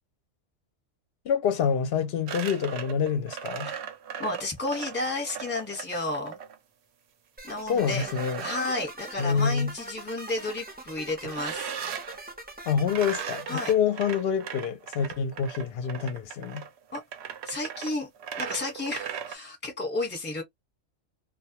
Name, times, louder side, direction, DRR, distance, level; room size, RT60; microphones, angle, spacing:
voice 1, 1.3-3.7 7.7-8.4 9.2-9.7 12.7-16.6, left 7 dB, 60° left, 0.7 m, -27 dB
sound 1, 2.3-6.6 7.8-8.9 11.2-12.2 12.8-19.3, right 8 dB, 65° right, 0.8 m, -38 dB
voice 2, 4.2-6.4 7.4-8.1 8.4-11.7 13.5-13.7 16.9-17.0 17.4-18.1 18.4-20.4, left 2 dB, 10° left, 1.0 m, -32 dB
sound 2, 7.4-13.7, right 2 dB, 10° right, 0.5 m, -42 dB
2.3 x 2.2 x 2.8 m
omnidirectional pair, 1.3 m